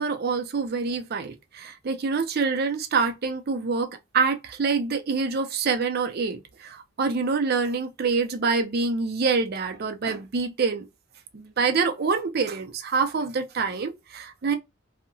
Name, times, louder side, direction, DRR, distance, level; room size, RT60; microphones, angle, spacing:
voice 1, 0.0-10.9 11.3-14.5, right 4 dB, 50° right, 0.5 m, -26 dB
2.7 x 2.1 x 2.6 m
head